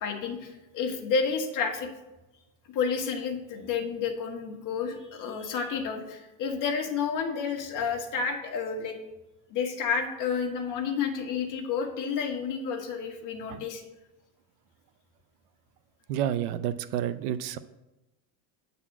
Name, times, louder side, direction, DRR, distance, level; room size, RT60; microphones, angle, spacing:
voice 1, 0.0-1.9 2.7-9.0 9.5-13.8, left 6 dB, 45° left, 3 dB, 1.5 m, -30 dB
voice 2, 16.1-17.6, right 10 dB, 80° right, 14 dB, 0.6 m, -30 dB
8.6 x 4.1 x 7.2 m, 1.0 s
cardioid pair, 145°, 45 cm